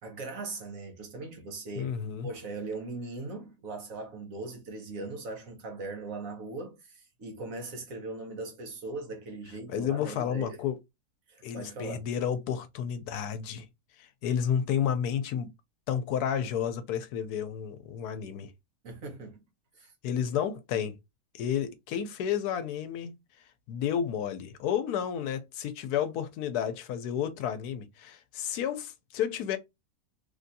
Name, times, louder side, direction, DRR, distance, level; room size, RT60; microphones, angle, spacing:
voice 1, 0.0-1.9 2.2-10.6 11.3-12.0 18.8-19.4 19.8-19.9, right 3 dB, 60° right, 1.3 m, -39 dB
voice 2, 1.8-2.3 9.7-10.8 11.4-13.7 14.2-15.5 15.9-18.5 20.0-21.0 21.3-23.1 23.7-29.6, left 8 dB, 80° left, 1.1 m, -31 dB
3.3 x 2.5 x 2.6 m
omnidirectional pair, 1.6 m